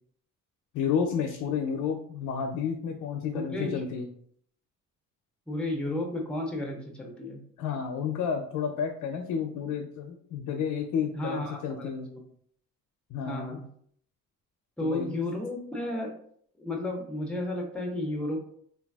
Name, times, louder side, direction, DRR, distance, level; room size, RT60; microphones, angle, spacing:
voice 1, 0.7-4.1 7.6-12.1 13.1-13.6 14.8-15.2, left 7 dB, 80° left, 3 dB, 0.5 m, -31 dB
voice 2, 3.3-3.7 5.5-7.4 11.1-12.2 13.2-13.6 14.8-16.1 16.6-18.4, left 1 dB, 5° left, 0 dB, 0.4 m, -33 dB
3.3 x 2.3 x 2.3 m, 0.62 s
cardioid pair, 155°, 32 cm